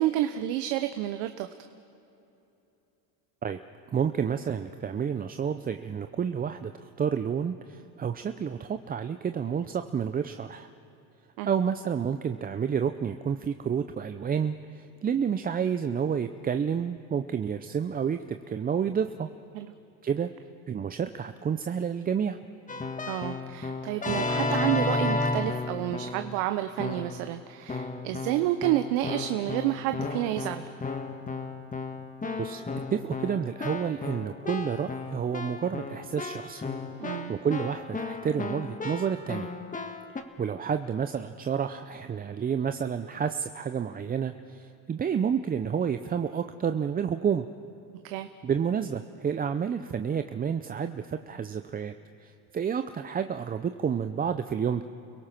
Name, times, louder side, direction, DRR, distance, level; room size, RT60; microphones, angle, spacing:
voice 1, 0.0-1.5 11.4-11.5 19.5-19.7 23.1-30.7 37.0-37.3 48.0-48.3, right 14 dB, 70° right, 8 dB, 1.0 m, -29 dB
voice 2, 3.9-10.7 11.4-19.3 20.0-20.3 20.7-22.4 32.4-32.6 32.9-36.6 37.3-39.5 40.4-47.5 48.4-51.9 52.2-54.8, right 7 dB, 20° right, 9 dB, 0.5 m, -30 dB
Keyboard (musical), 22.7-26.3 26.8-27.3 27.7-40.2, left 3 dB, 15° left, 1.5 m, -33 dB
29.5 x 17.5 x 5.9 m, 2.9 s
supercardioid pair, 100°, 45 cm